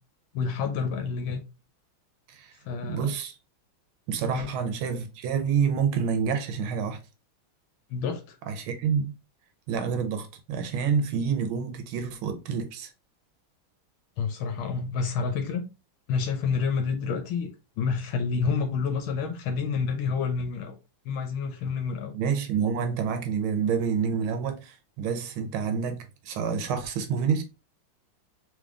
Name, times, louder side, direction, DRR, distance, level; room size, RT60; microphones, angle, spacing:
voice 1, 0.3-1.4 2.7-3.0 4.3-4.5 7.9-8.4 14.2-15.7 16.1-17.5 17.8-20.7 21.1-22.1, left 5 dB, 80° left, 1.6 m, -28 dB
voice 2, 2.8-3.3 4.1-7.0 8.5-9.1 9.7-12.9 22.1-27.4, right 6 dB, 90° right, 1.6 m, -28 dB
3.7 x 3.6 x 3.6 m
omnidirectional pair, 2.2 m